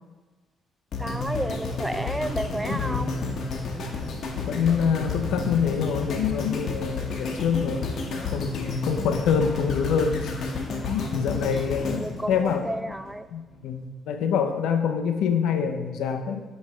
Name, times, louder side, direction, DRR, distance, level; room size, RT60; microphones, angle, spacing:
sound 1, 0.9-13.1 13.7-13.8, left 3 dB, 65° left, 1.0 m, -31 dB
voice 1, 1.0-3.1 10.6-10.7 11.5-11.7 12.0-13.3, right 1 dB, 10° right, 11 dB, 0.3 m, -32 dB
voice 2, 2.7-3.1 4.3-7.9 8.2-10.3 10.9-12.6 13.3-16.4, left 7 dB, 85° left, 6 dB, 0.6 m, -26 dB
7.4 x 3.2 x 4.8 m, 1.2 s
cardioid pair, 90°, 0 cm